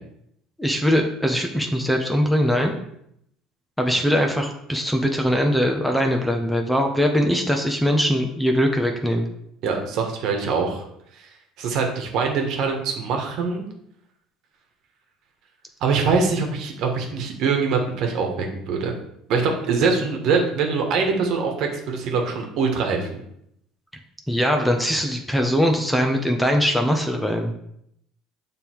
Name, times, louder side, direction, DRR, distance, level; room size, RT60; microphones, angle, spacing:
voice 1, 0.6-2.7 3.8-9.3 19.8-19.9 24.3-27.5, equal, 5° left, 3 dB, 0.9 m, -21 dB
voice 2, 9.6-10.8 11.2-11.3 11.6-13.6 15.8-19.0 19.3-23.2, right 5 dB, 65° right, 3 dB, 1.4 m, -23 dB
6.8 x 3.5 x 4.6 m, 0.75 s
supercardioid pair, 95°, 0 cm